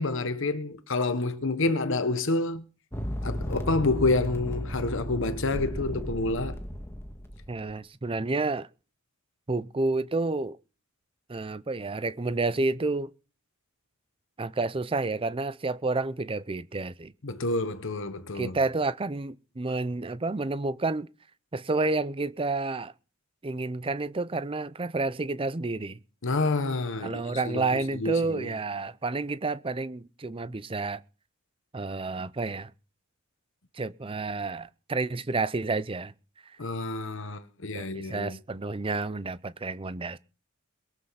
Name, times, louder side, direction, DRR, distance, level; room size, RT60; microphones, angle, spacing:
voice 1, 0.0-2.6 3.2-6.6 17.2-18.6 26.2-28.5 36.6-38.4, left 2 dB, 60° left, 1.1 m, -28 dB
sound 1, 2.9-7.6, equal, 10° left, 1.7 m, -34 dB
voice 2, 7.5-8.7 9.5-10.6 11.3-13.1 14.4-17.1 18.3-21.1 21.5-22.9 23.4-26.0 27.0-31.0 31.7-32.7 33.7-36.1 37.7-40.2, right 3 dB, 25° right, 0.6 m, -30 dB
21.5 x 7.9 x 5.7 m
head